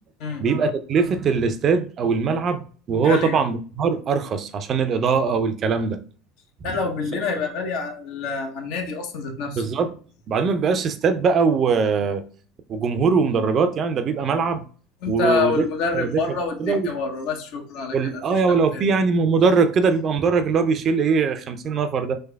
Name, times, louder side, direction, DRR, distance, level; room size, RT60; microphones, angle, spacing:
voice 1, 0.4-6.0 9.6-9.9 10.3-12.2 12.7-14.6 15.1-15.7 15.9-16.2 16.6-16.9 17.9-22.1, right 5 dB, 45° right, 0.4 m, -21 dB
voice 2, 3.0-3.4 6.6-9.6 15.0-18.2 18.5-18.9, left 4 dB, 65° left, 0.8 m, -27 dB
3.4 x 3.2 x 2.2 m
hypercardioid pair, 75°, 0 cm